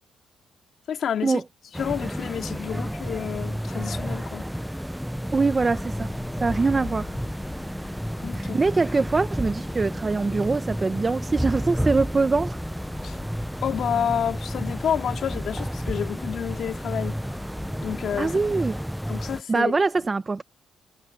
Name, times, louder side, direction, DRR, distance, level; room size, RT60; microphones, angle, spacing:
voice 1, 0.9-1.4 1.8-4.5 8.2-8.6 13.0-13.2 13.6-17.2 17.8-18.4 19.1-19.7, left 8 dB, 65° left, 3.0 m, -29 dB
sound 1, 1.7-19.4, equal, ahead, 0.6 m, -31 dB
sound 2, 5.1-18.6, left 4 dB, 30° left, 5.4 m, -43 dB
voice 2, 5.3-6.1 6.4-7.1 8.3-12.6 18.2-18.8 19.5-20.4, right 4 dB, 25° right, 1.0 m, -23 dB
cardioid pair, 90°, 0 cm